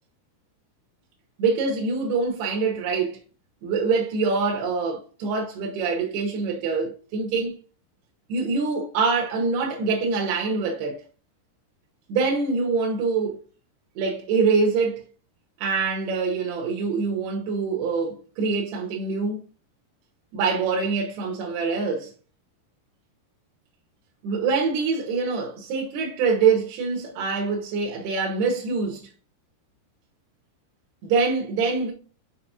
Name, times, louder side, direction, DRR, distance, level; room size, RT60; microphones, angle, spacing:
voice 1, 1.4-3.2 3.6-7.6 8.3-11.0 12.1-13.4 14.0-15.0 15.6-19.4 20.3-22.1 24.2-29.1 31.0-31.9, right 4 dB, 80° right, 3.1 m, -24 dB
6.7 x 5.2 x 2.7 m
omnidirectional pair, 4.6 m